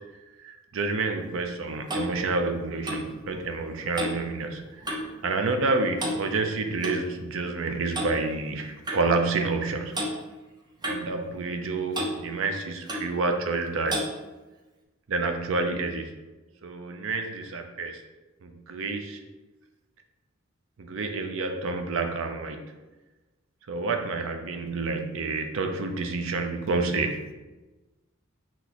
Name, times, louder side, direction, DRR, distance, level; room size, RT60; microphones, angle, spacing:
voice 1, 0.4-4.7 5.2-10.0 10.9-14.0 15.1-16.0 16.6-18.0 18.4-19.2 20.8-22.6 23.7-27.3, right 3 dB, 65° right, 5 dB, 0.5 m, -29 dB
Clock, 1.3-5.2 5.5-5.7 6.0-7.0 7.9-8.2 8.9-9.0 9.9-10.1 10.8-11.7 11.9-12.2 12.9-13.1 13.9-14.1, right 1 dB, 20° right, 0.6 m, -33 dB
6.0 x 2.9 x 2.9 m, 1.1 s
head